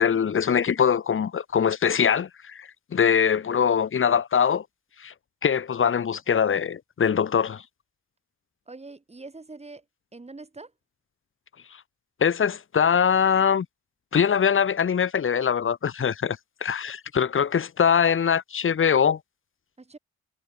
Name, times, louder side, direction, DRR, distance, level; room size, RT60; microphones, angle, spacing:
voice 1, 0.0-4.6 5.0-5.1 5.4-7.6 12.2-13.7 14.1-19.2, left 7 dB, 45° left, 1.4 m, -22 dB
voice 2, 8.7-9.8 10.1-10.7 19.8-20.0, right 3 dB, 20° right, 3.2 m, -43 dB
cardioid pair, 75°, 30 cm